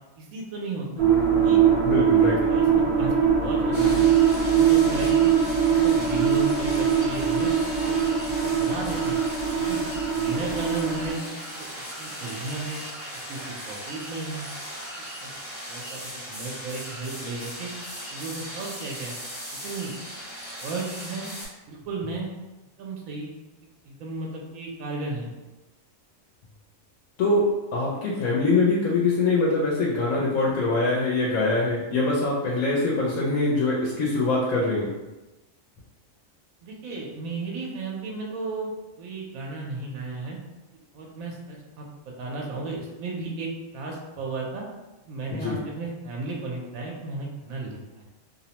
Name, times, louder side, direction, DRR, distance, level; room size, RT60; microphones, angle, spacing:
voice 1, 0.2-1.1 1.4-1.6 2.5-4.1 4.5-5.3 5.6-8.1 8.4-9.2 9.6-9.8 10.1-11.2 11.6-11.7 12.0-12.8 13.3-14.5 15.2-15.3 15.7-17.7 18.1-19.1 19.6-19.9 20.6-21.3 21.7-22.3 22.8-23.3 23.9-25.3 36.6-38.7 39.0-40.4 40.9-41.8 42.2-44.6 45.0-48.0, right 3 dB, 85° right, -2 dB, 1.0 m, -34 dB
sound 1, 1.0-11.1, right 7 dB, 45° right, 1.2 m, -22 dB
voice 2, 1.8-2.4 27.2-27.4 27.7-34.9 45.3-45.6, left 3 dB, 80° left, -5 dB, 1.0 m, -23 dB
sound 2, 3.7-21.5, equal, 45° left, 1.2 m, -38 dB
2.6 x 2.0 x 2.8 m, 1.1 s
omnidirectional pair, 1.4 m